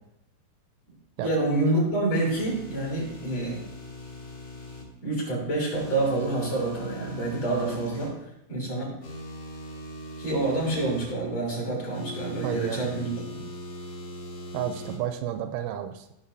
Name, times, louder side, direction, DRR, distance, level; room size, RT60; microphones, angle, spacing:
voice 1, 1.2-3.6 5.0-8.2 8.5-9.0 10.2-13.4, right 2 dB, 35° left, -3 dB, 3.9 m, -27 dB
sound 1, 2.2-4.8 5.7-8.1 9.0-11.1 11.9-15.0, equal, 75° left, 1.0 m, -40 dB
voice 2, 12.4-12.8 14.5-16.1, right 10 dB, 85° right, 8 dB, 3.0 m, -31 dB
15.5 x 6.5 x 2.7 m, 0.83 s
omnidirectional pair, 5.5 m